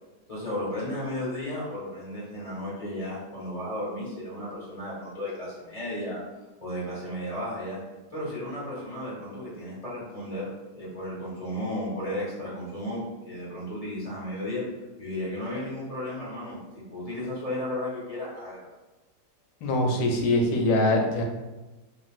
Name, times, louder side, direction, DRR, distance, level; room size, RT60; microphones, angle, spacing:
voice 1, 0.3-6.2 6.6-7.8 8.1-10.5 10.7-14.6 15.0-16.6 16.9-18.6, left 1 dB, 25° left, -8 dB, 0.9 m, -34 dB
voice 2, 19.6-21.2, left 1 dB, 90° left, 2 dB, 1.2 m, -23 dB
3.1 x 2.6 x 2.4 m, 1.1 s
omnidirectional pair, 1.8 m